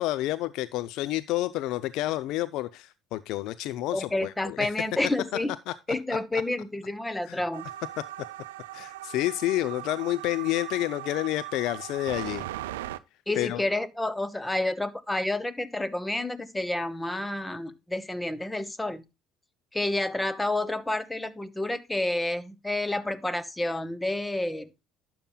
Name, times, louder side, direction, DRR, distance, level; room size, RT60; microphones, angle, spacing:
voice 1, 0.0-4.7 5.7-5.8 7.2-7.4 8.0-8.1 8.7-12.4 13.3-13.6, left 16 dB, 65° left, 0.5 m, -29 dB
voice 2, 3.9-5.5 5.9-7.7 13.3-19.0 19.7-24.7, left 2 dB, 10° left, 1.1 m, -29 dB
sound 1, 7.5-13.0, right 14 dB, 80° right, 0.5 m, -39 dB
12.0 x 8.7 x 2.3 m
hypercardioid pair, 65°, 0 cm